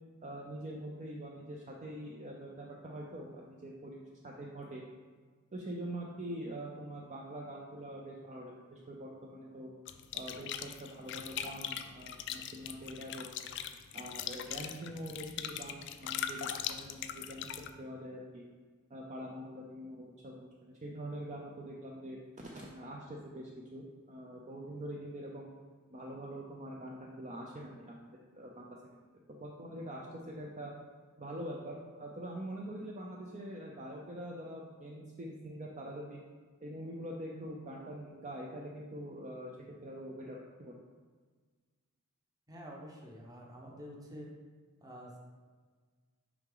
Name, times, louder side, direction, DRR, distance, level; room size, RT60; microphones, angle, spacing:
voice 1, 0.2-4.8 5.5-9.7 10.1-13.2 13.9-18.4 18.9-22.2 22.5-25.5 25.9-29.0 29.3-30.7 31.2-36.2 36.6-39.5 39.8-40.7, right 1 dB, 35° right, -2 dB, 0.6 m, -44 dB
sound 1, 9.9-17.7, left 9 dB, 55° left, 0.4 m, -41 dB
voice 2, 42.5-44.3 44.8-45.2, equal, 15° right, -1 dB, 0.9 m, -48 dB
6.0 x 4.8 x 3.8 m, 1.5 s
head